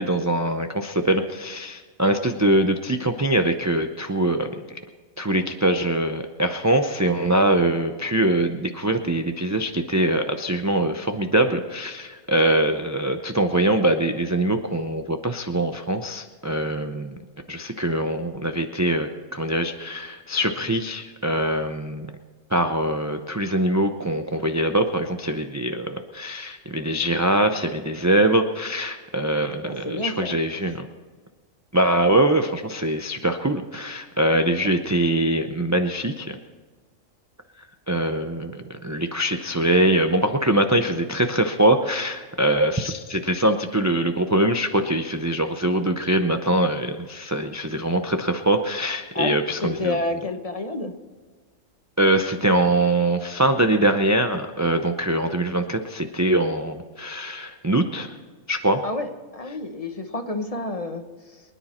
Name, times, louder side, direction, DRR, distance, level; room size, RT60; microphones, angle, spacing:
voice 1, 0.0-4.6 5.2-17.2 17.5-22.1 22.5-30.9 31.7-36.3 37.9-50.0 52.0-58.1 58.5-58.8, right 1 dB, 20° right, 5 dB, 0.4 m, -23 dB
voice 2, 29.6-30.4 34.5-35.3 49.1-50.9 58.8-61.4, left 2 dB, 30° left, 6 dB, 1.0 m, -30 dB
24.0 x 10.0 x 4.3 m, 1.5 s
omnidirectional pair, 1.4 m